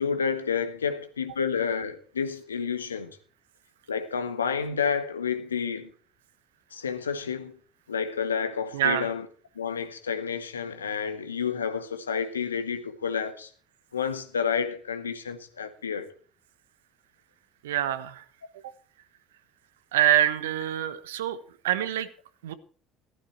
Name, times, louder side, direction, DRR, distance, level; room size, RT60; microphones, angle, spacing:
voice 1, 0.0-3.2 3.9-5.9 6.7-7.5 7.9-9.2 9.5-13.5 13.9-16.1, left 6 dB, 80° left, 1.4 m, -30 dB
voice 2, 8.7-9.1 17.6-18.2 19.9-21.4 21.6-22.1 22.4-22.5, right 12 dB, 75° right, 1.2 m, -25 dB
15.5 x 13.0 x 4.5 m
figure-of-eight pair, 60°, 0 cm